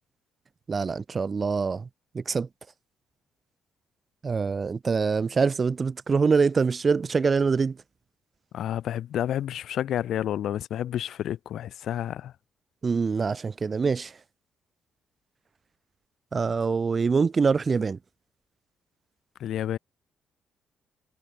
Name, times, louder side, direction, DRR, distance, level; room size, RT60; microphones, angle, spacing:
voice 1, 0.7-1.9 2.1-2.5 4.2-7.8 12.8-14.2 16.3-18.0, right 5 dB, 35° right, 0.5 m, -24 dB
voice 2, 8.5-12.3 19.4-19.8, left 11 dB, 70° left, 0.5 m, -30 dB
cardioid pair, 90°, 0 cm